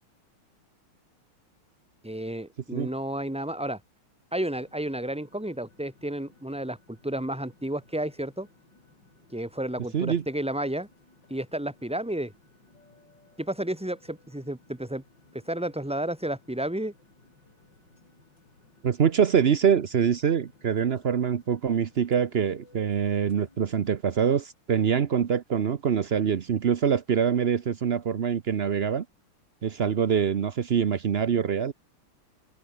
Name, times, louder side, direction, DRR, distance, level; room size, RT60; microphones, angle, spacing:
voice 1, 2.0-3.8 4.3-8.5 9.3-10.9 11.3-12.3 13.4-15.0 15.3-16.9, right 1 dB, 5° right, 2.1 m, -31 dB
sound 1, 4.5-24.0, left 3 dB, 55° left, 6.1 m, -60 dB
voice 2, 18.8-29.0 29.6-31.7, right 7 dB, 80° right, 0.5 m, -24 dB
open air
omnidirectional pair, 2.4 m